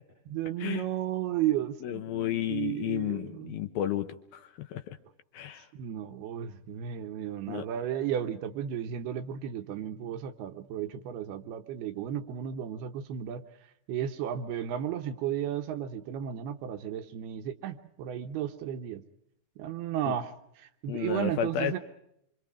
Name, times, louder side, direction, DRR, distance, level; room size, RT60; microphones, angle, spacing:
voice 1, 0.3-3.6 5.7-13.4 13.9-19.0 19.6-21.8, right 10 dB, 75° right, 8 dB, 2.7 m, -34 dB
voice 2, 1.8-5.0 5.3-5.7 7.5-7.7 20.1-20.2 20.9-21.8, left 11 dB, 70° left, 8 dB, 2.5 m, -32 dB
26.0 x 25.5 x 4.9 m, 0.78 s
omnidirectional pair, 5.0 m